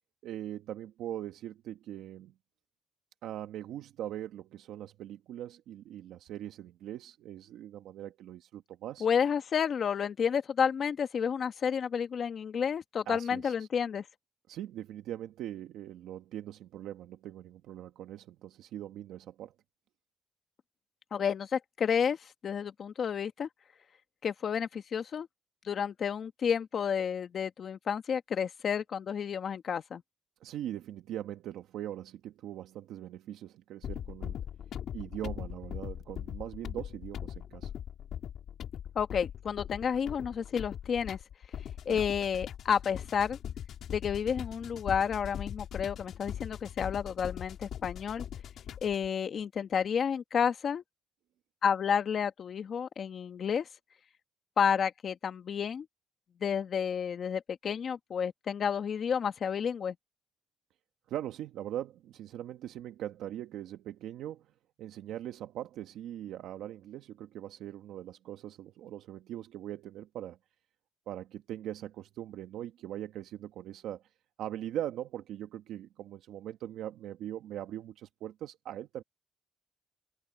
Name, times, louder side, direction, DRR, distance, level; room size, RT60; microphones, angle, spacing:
voice 1, 0.2-2.3 3.2-9.1 13.1-13.7 14.5-19.5 30.4-34.4 34.9-37.7 41.9-42.0 61.1-64.5 64.8-70.4 71.1-74.0 74.4-79.0, right 12 dB, 85° right, 1.2 m, -41 dB
voice 2, 9.0-14.0 21.1-23.5 24.2-25.3 25.6-30.0 38.9-41.2 41.8-43.4 43.9-48.2 48.8-50.8 51.6-53.7 54.6-55.8 56.4-59.9, left 7 dB, 55° left, 1.6 m, -31 dB
sound 1, 33.8-49.1, left 9 dB, 70° left, 2.9 m, -41 dB
cardioid pair, 90°, 0 cm